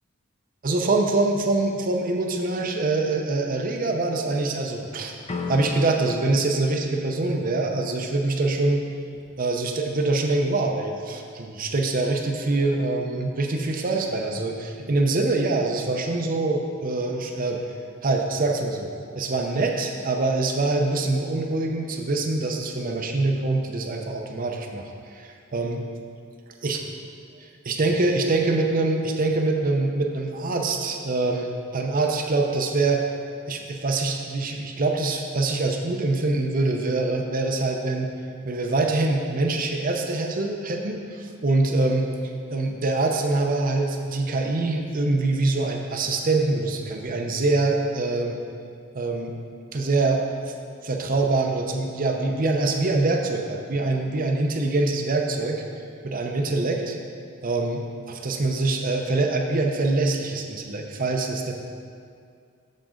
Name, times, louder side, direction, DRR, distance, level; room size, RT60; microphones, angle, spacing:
voice 1, 0.6-5.1 5.5-8.8 9.4-17.6 18.0-18.9 19.2-25.8 26.6-26.8 27.6-33.1 33.5-38.1 38.4-42.1 42.5-48.4 48.9-49.3 49.7-50.2 50.8-55.6 56.0-57.0 57.4-61.5, right 2 dB, 45° right, 2 dB, 0.6 m, -24 dB
sound 1, 5.3-8.2, left 3 dB, 30° left, 0.4 m, -36 dB
7.6 x 7.2 x 3.7 m, 2.3 s
head